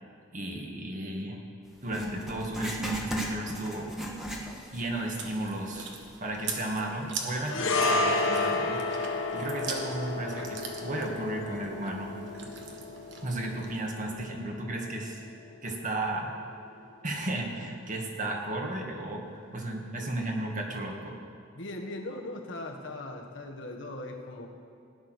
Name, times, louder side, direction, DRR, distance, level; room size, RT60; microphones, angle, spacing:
voice 1, 0.3-1.4 1.8-3.9 4.7-5.9 6.2-8.8 9.3-12.2 13.2-15.2 15.6-16.3 17.0-21.2, right 1 dB, 40° right, 1 dB, 1.9 m, -34 dB
Writing, 1.9-4.9 5.2-5.3 6.0-6.1, equal, ahead, 1.5 m, -35 dB
Chewing mastication, 4.9-13.8, right 5 dB, 65° right, 1.6 m, -42 dB
sound 1, 7.5-16.0 16.2-16.4, left 2 dB, 85° left, 1.4 m, -32 dB
voice 2, 21.5-24.5, left 2 dB, 65° left, 2 dB, 1.7 m, -39 dB
16.5 x 10.0 x 6.3 m, 2.4 s
head